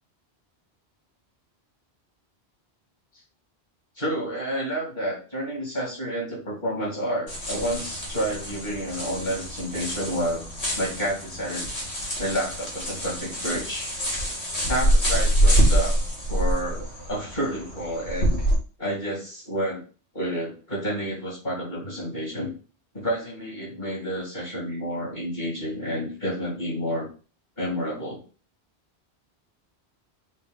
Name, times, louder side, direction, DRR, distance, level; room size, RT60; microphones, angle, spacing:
voice 1, 4.0-10.5 10.8-11.7 12.2-13.9 14.7-16.0 16.3-16.8 17.1-18.3 18.8-19.8 20.1-22.5 22.9-27.1 27.6-28.2, equal, 45° left, -4 dB, 2.5 m, -29 dB
sound 1, 7.3-18.6, right 1 dB, 75° left, 2.0 m, -25 dB
5.4 x 2.2 x 3.8 m, 0.35 s
omnidirectional pair, 1.1 m